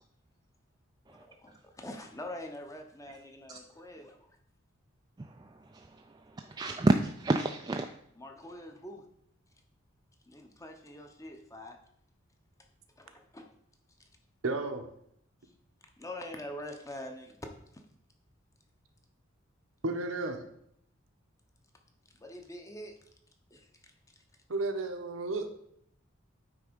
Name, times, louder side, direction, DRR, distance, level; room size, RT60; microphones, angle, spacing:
voice 1, 1.1-4.3 8.2-9.0 10.3-11.8 13.0-13.5 16.0-17.4 17.7-17.8 22.1-23.0 23.5-23.9, left 1 dB, 15° left, 4 dB, 0.8 m, -45 dB
voice 2, 5.2-7.9, right 2 dB, 20° right, 4 dB, 0.3 m, -30 dB
voice 3, 14.4-14.9 19.8-20.4 24.5-25.6, right 2 dB, 80° right, 6 dB, 0.9 m, -33 dB
8.9 x 3.5 x 5.1 m, 0.70 s
head